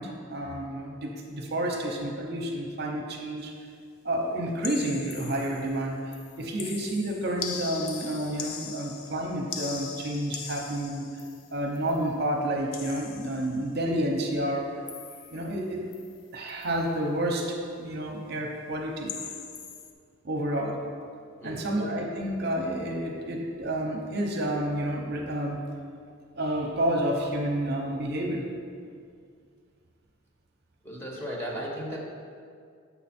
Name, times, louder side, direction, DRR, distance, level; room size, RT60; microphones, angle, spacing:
voice 1, 0.0-3.5 4.0-11.0 11.5-14.7 15.3-15.9 16.3-19.3 20.2-20.8 21.4-25.6 26.4-28.5, right 1 dB, 50° right, 1 dB, 0.7 m, -30 dB
sound 1, 4.6-5.8 6.1-12.0 12.7-13.7 14.9-15.6 15.9-16.2 16.5-16.8 19.1-19.9, left 7 dB, 75° left, 0.6 m, -40 dB
voice 2, 21.4-21.8 30.8-32.0, equal, 10° left, -4 dB, 1.0 m, -35 dB
7.0 x 5.3 x 4.3 m, 2.2 s
head